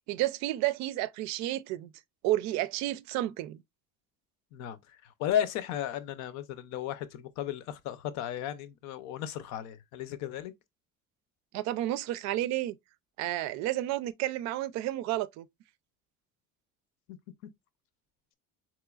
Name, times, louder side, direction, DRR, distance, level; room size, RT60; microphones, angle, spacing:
voice 1, 0.1-1.9 2.2-3.6 11.5-12.8 13.2-15.5, right 15 dB, 70° right, 0.5 m, -31 dB
voice 2, 4.5-10.5, left 10 dB, 70° left, 0.6 m, -34 dB
3.9 x 3.0 x 2.3 m
cardioid pair, 140°, 29 cm